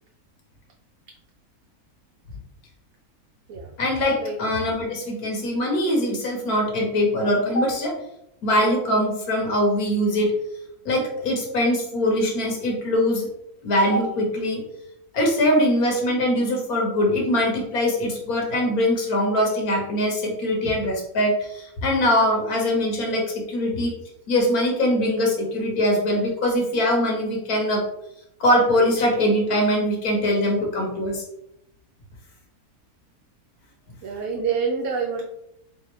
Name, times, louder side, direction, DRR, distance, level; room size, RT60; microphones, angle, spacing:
voice 1, 3.8-8.0 8.4-10.3 10.8-13.3 13.6-14.6 15.1-23.9 24.3-27.8 28.4-31.2, left 1 dB, 80° left, 1 dB, 1.5 m, -22 dB
voice 2, 34.0-35.3, right 5 dB, 75° right, 1 dB, 1.0 m, -27 dB
3.8 x 3.5 x 3.1 m, 0.79 s
omnidirectional pair, 1.6 m